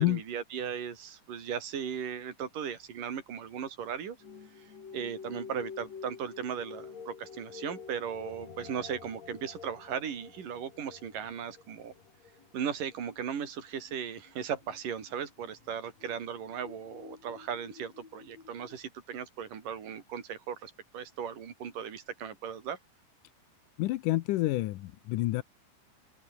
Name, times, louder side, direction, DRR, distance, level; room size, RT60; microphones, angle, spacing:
voice 1, 0.0-4.2 4.6-11.9 12.5-22.8, right 8 dB, 80° right, 4.7 m, -37 dB
sound 1, 4.2-18.8, left 6 dB, 55° left, 4.4 m, -49 dB
voice 2, 23.8-25.4, left 17 dB, 80° left, 2.3 m, -28 dB
open air
omnidirectional pair, 3.7 m